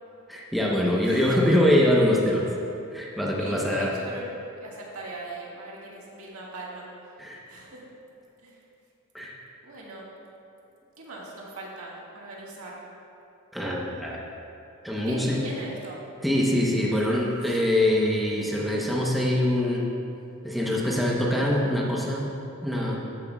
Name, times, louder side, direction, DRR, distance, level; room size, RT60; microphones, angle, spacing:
voice 1, 0.3-2.5 2.9-3.9 7.2-7.4 9.1-9.4 13.5-14.2 14.8-15.4 16.2-19.9 20.4-22.3 22.6-23.0, left 1 dB, ahead, -4 dB, 0.9 m, -24 dB
voice 2, 1.0-1.4 3.4-6.9 7.5-7.8 8.4-8.6 9.6-10.1 11.0-12.8 15.1-16.0 17.5-17.6, right 2 dB, 70° right, -4 dB, 1.8 m, -40 dB
13.5 x 9.5 x 2.4 m, 2.8 s
head